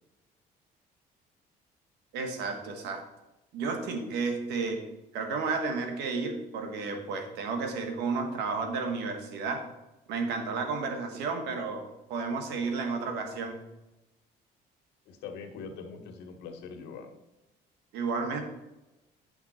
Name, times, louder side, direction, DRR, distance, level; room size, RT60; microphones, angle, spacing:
voice 1, 2.1-3.0 3.5-4.8 5.1-9.7 10.1-13.6 17.9-18.4, right 4 dB, 85° right, 5 dB, 1.7 m, -32 dB
voice 2, 15.0-17.2, left 5 dB, 85° left, 5 dB, 1.5 m, -42 dB
10.0 x 5.8 x 4.3 m, 0.98 s
cardioid pair, 110°, 17 cm